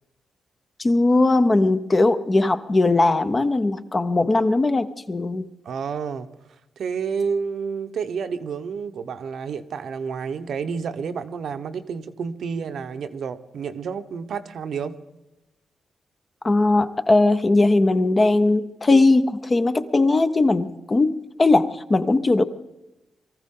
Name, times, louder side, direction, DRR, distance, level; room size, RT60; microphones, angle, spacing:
voice 1, 0.8-5.5 16.4-22.4, left 2 dB, 25° left, 10 dB, 0.7 m, -19 dB
voice 2, 5.6-6.3 6.8-15.0, right 6 dB, 70° right, 9 dB, 0.9 m, -30 dB
23.0 x 14.5 x 3.8 m, 0.95 s
wide cardioid pair, 140°, 0 cm